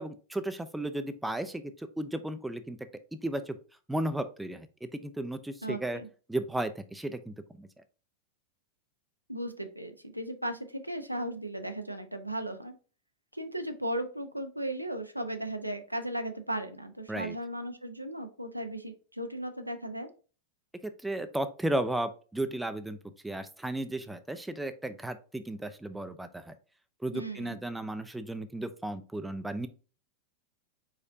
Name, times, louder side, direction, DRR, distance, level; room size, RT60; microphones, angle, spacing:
voice 1, 0.0-2.8 3.1-3.6 3.9-6.0 6.3-7.7 17.1-17.4 20.8-23.0 23.2-26.5 27.0-29.7, right 1 dB, 5° right, 10 dB, 0.5 m, -34 dB
voice 2, 5.6-6.1 9.3-12.7 13.3-20.1 27.1-27.6, right 1 dB, 90° right, 7 dB, 0.6 m, -36 dB
4.9 x 4.2 x 2.6 m, 0.36 s
figure-of-eight pair, 90°, 0 cm